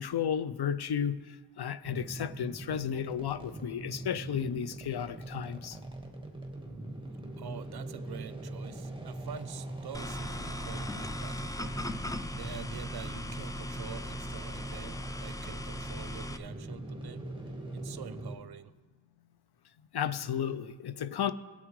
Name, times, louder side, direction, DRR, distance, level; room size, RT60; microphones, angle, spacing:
voice 1, 0.0-5.8 19.9-21.3, left 8 dB, 70° left, 0.5 m, -33 dB
sound 1, 1.8-18.4, right 2 dB, 10° right, 1.4 m, -42 dB
voice 2, 7.4-11.8 12.3-17.3 17.7-18.7, right 8 dB, 70° right, 0.6 m, -46 dB
sound 2, 9.9-16.4, left 1 dB, 10° left, 0.4 m, -39 dB
18.0 x 8.3 x 3.2 m
wide cardioid pair, 60°, 40 cm